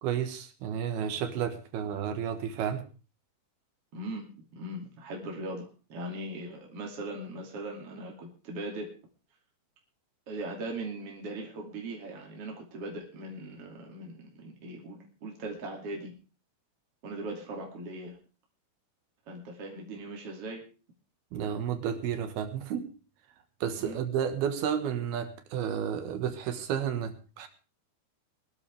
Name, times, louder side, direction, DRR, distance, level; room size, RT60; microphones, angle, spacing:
voice 1, 0.0-2.8 21.3-22.9 23.6-27.5, right 8 dB, 80° right, 7 dB, 3.6 m, -32 dB
voice 2, 3.9-4.3 4.5-8.9 10.3-16.1 17.0-18.2 19.3-20.6 23.8-24.0, right 1 dB, 40° right, 0 dB, 3.4 m, -39 dB
22.0 x 12.5 x 3.5 m, 0.34 s
omnidirectional pair, 4.3 m